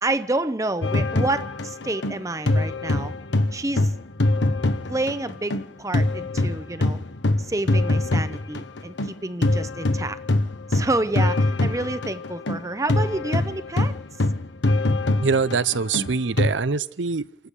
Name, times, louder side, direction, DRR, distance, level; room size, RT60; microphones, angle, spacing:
voice 1, 0.0-3.1 3.5-3.9 4.9-7.0 7.4-10.2 10.7-13.9, right 2 dB, 15° right, 0.7 m, -28 dB
sound 1, 0.8-5.7 5.9-16.5, left 2 dB, 80° left, 1.2 m, -23 dB
voice 2, 15.2-17.5, right 5 dB, 90° right, 0.7 m, -24 dB
28.0 x 12.5 x 8.4 m
head